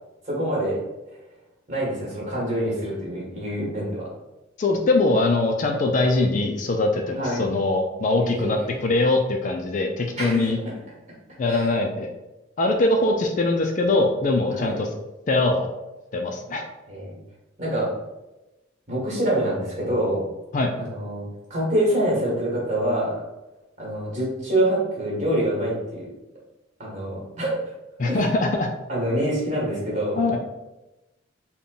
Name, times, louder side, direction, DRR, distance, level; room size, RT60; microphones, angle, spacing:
voice 1, 0.2-0.8 1.7-4.1 7.1-7.5 8.2-8.8 10.2-10.5 11.5-11.8 14.5-14.8 16.9-17.2 17.6-18.0 18.9-20.3 20.8-23.2 23.8-26.1 26.8-27.6 28.1-28.2 28.9-30.4, right 1 dB, 35° right, -5 dB, 1.5 m, -26 dB
voice 2, 4.6-10.6 11.4-12.1 12.6-14.9 15.3-15.7 16.1-16.6 20.5-20.7 28.0-28.7 30.1-30.4, left 2 dB, 40° left, 3 dB, 0.3 m, -22 dB
3.7 x 2.2 x 3.8 m, 1.0 s
head